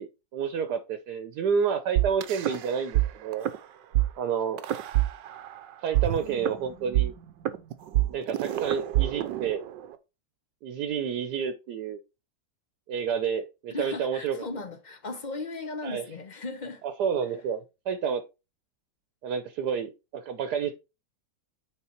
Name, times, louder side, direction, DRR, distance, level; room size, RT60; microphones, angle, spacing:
voice 1, 0.0-3.5 4.2-4.6 5.8-7.1 8.1-9.6 10.6-12.0 12.9-14.4 15.8-16.0 17.0-18.2 19.2-20.7, right 7 dB, 70° right, 1.3 m, -29 dB
sound 1, 2.0-3.1 3.3-3.6 3.9-4.1 4.6-5.6 5.9-10.0, right 15 dB, 90° right, 1.4 m, -26 dB
voice 2, 13.7-16.8, left 3 dB, 40° left, 0.7 m, -37 dB
9.0 x 4.1 x 4.4 m
omnidirectional pair, 1.9 m